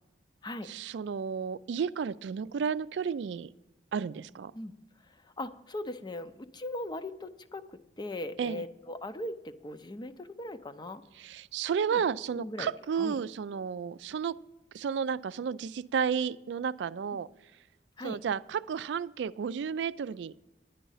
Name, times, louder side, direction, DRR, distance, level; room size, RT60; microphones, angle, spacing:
voice 1, 0.6-3.5 3.9-4.5 8.4-8.6 11.2-14.4 14.7-17.3 18.0-20.3, right 7 dB, 75° right, 17 dB, 0.3 m, -32 dB
voice 2, 5.1-11.0 11.9-12.0 12.3-12.7 13.0-13.2 17.1-17.2 18.0-18.2, left 1 dB, 25° left, 11 dB, 0.5 m, -39 dB
10.0 x 10.0 x 5.5 m, 0.99 s
head